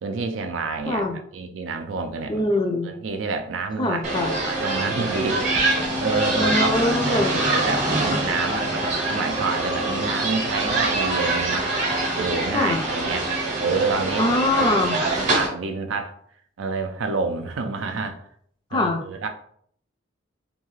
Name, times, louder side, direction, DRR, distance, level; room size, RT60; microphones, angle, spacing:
voice 1, 0.0-1.0 1.3-2.5 2.8-4.2 4.5-5.7 6.0-11.7 12.2-13.3 13.6-14.3 14.6-16.1 16.6-18.2 18.7-19.3, right 4 dB, 80° right, 6 dB, 0.4 m, -28 dB
voice 2, 0.9-1.2 2.3-2.9 3.8-4.3 6.3-7.4 12.5-12.8 14.2-15.0 18.7-19.0, left 2 dB, 25° left, 3 dB, 0.4 m, -23 dB
sound 1, 4.0-15.5, right 2 dB, 40° right, 0.8 m, -24 dB
2.7 x 2.3 x 3.0 m, 0.63 s
head